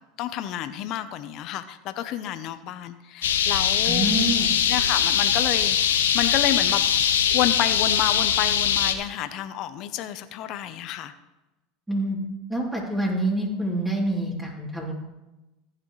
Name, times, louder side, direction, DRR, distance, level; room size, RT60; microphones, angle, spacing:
voice 1, 0.2-4.1 4.7-6.8 7.3-11.1, left 12 dB, 55° left, 10 dB, 0.9 m, -29 dB
sound 1, 3.2-8.9, left 8 dB, 90° left, 1.1 m, -22 dB
voice 2, 3.8-4.5 11.9-12.2 12.5-14.9, right 1 dB, 10° right, -4 dB, 3.5 m, -26 dB
15.5 x 10.0 x 3.3 m, 1.0 s
hypercardioid pair, 100°, 0 cm